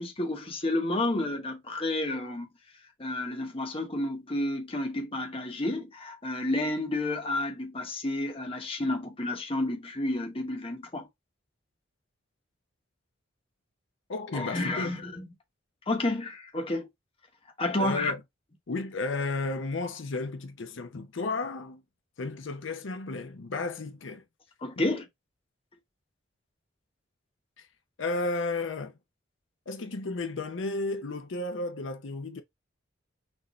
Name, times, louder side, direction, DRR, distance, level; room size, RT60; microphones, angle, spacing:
voice 1, 0.0-2.5 3.0-11.1 14.3-15.3 15.9-16.9 17.6-18.1 24.6-25.0, left 2 dB, 30° left, 1.0 m, -30 dB
voice 2, 14.1-14.9 17.8-18.2 18.7-21.8 22.2-24.2 24.8-25.0 27.6-27.7 28.0-28.9 29.7-32.4, left 3 dB, 70° left, 0.6 m, -33 dB
6.2 x 2.6 x 3.0 m
head